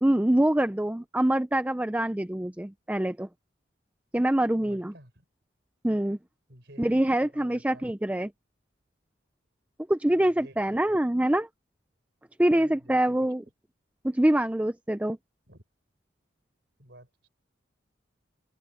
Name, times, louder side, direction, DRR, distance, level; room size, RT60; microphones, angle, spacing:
voice 1, 0.0-3.3 4.1-4.9 5.8-6.2 6.8-8.3 9.9-11.5 12.4-13.4 14.0-15.2, right 1 dB, 5° right, 0.4 m, -25 dB
voice 2, 4.6-5.2 6.5-7.9 10.1-11.0 12.5-13.2 15.5-15.6 16.8-17.3, right 1 dB, 55° right, 6.4 m, -52 dB
open air
head